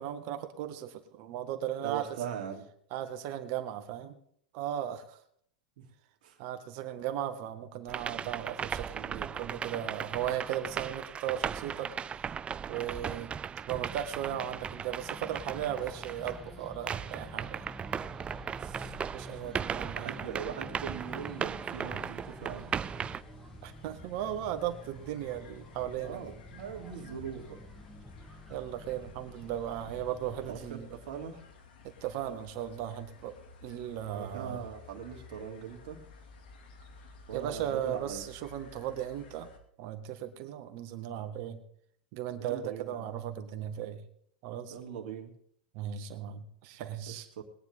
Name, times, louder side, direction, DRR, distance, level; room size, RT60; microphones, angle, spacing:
voice 1, 0.0-2.1 2.9-4.1 4.5-5.2 6.4-11.9 12.7-13.3 13.7-17.6 19.1-20.3 23.6-26.3 28.5-30.9 31.8-33.3 33.6-34.6 37.3-39.5 39.8-41.6 42.1-44.1 44.4-44.8 45.7-47.3, right 11 dB, 55° right, 8 dB, 1.8 m, -36 dB
voice 2, 1.8-2.7 5.8-5.9 6.2-6.4 18.6-18.9 19.3-19.6 20.0-22.7 26.0-27.6 30.5-31.4 34.1-36.0 37.3-38.2 42.4-43.1 44.7-45.3 47.1-47.4, right 8 dB, 70° right, 2 dB, 2.8 m, -41 dB
sound 1, 7.9-16.5 16.9-23.2, right 7 dB, 20° right, 0.4 m, -37 dB
sound 2, 13.8-30.7, left 1 dB, 5° left, 2.8 m, -49 dB
sound 3, 20.7-39.6, left 4 dB, 75° left, 2.5 m, -55 dB
21.0 x 9.8 x 3.7 m, 0.68 s
hypercardioid pair, 115°, 5 cm